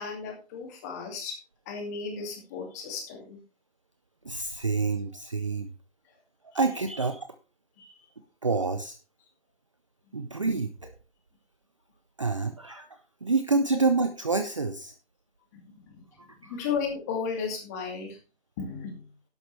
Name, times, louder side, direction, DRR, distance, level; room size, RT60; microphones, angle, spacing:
voice 1, 0.0-1.4 1.7-3.4 7.8-7.9 15.8-16.0 16.4-18.2 18.6-19.1, left 5 dB, 15° left, 2 dB, 2.4 m, -34 dB
voice 2, 4.2-5.7 6.5-7.3 8.4-9.0 10.1-10.9 12.2-12.9 13.2-14.9 16.2-16.5, right 3 dB, 30° right, 9 dB, 0.7 m, -27 dB
12.0 x 11.0 x 3.3 m, 0.33 s
figure-of-eight pair, 165°, 34 cm